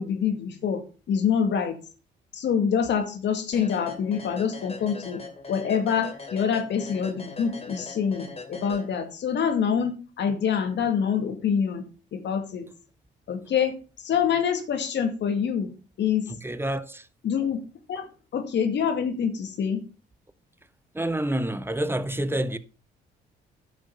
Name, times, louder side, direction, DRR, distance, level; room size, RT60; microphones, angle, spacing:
voice 1, 0.0-1.8 2.3-5.2 5.5-11.8 12.1-12.7 13.3-13.8 14.0-15.7 16.0-16.3 17.2-17.6 17.9-18.1 18.3-19.8, left 7 dB, 65° left, 2.2 m, -26 dB
sound 1, 3.5-9.3, left 3 dB, 30° left, 3.0 m, -41 dB
voice 2, 16.3-17.0 20.9-22.6, right 1 dB, 10° right, 1.1 m, -28 dB
10.5 x 6.3 x 5.5 m
supercardioid pair, 60°, 19 cm